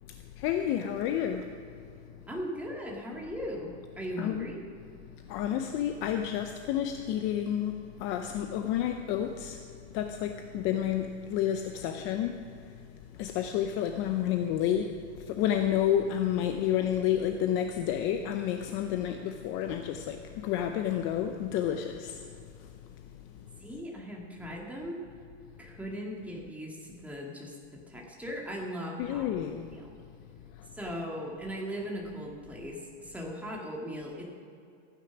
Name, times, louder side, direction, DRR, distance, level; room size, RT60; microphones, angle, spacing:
voice 1, 0.4-1.5 4.2-4.4 5.3-7.7 8.0-9.6 9.9-12.5 13.2-22.2 29.0-29.7, left 10 dB, 35° left, 6 dB, 0.6 m, -30 dB
voice 2, 2.3-4.6 23.6-25.0 25.6-29.3 29.7-30.0 30.7-34.2, equal, 5° right, -2 dB, 2.1 m, -38 dB
15.0 x 9.8 x 6.0 m, 2.5 s
supercardioid pair, 145°, 36 cm